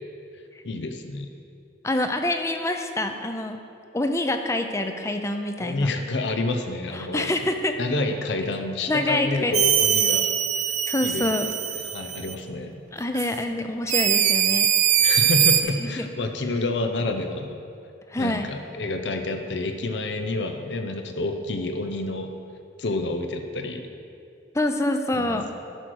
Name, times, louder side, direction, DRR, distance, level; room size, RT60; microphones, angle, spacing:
voice 1, 0.6-1.3 5.6-7.3 7.8-10.3 10.6-10.7 11.0-11.3 11.7-12.8 15.0-17.6 18.2-22.3 22.8-23.8 25.1-25.4, left 2 dB, 80° left, 6 dB, 0.7 m, -28 dB
voice 2, 1.8-3.6 3.9-5.9 6.9-7.8 8.9-9.5 10.9-11.5 12.9-14.7 15.8-16.1 18.1-18.5 24.5-25.5, left 1 dB, 15° left, 6 dB, 0.5 m, -26 dB
sound 1, 9.5-12.3 13.1-13.3 13.9-15.6, right 9 dB, 40° right, 0.5 m, -22 dB
12.0 x 6.3 x 4.6 m, 2.5 s
head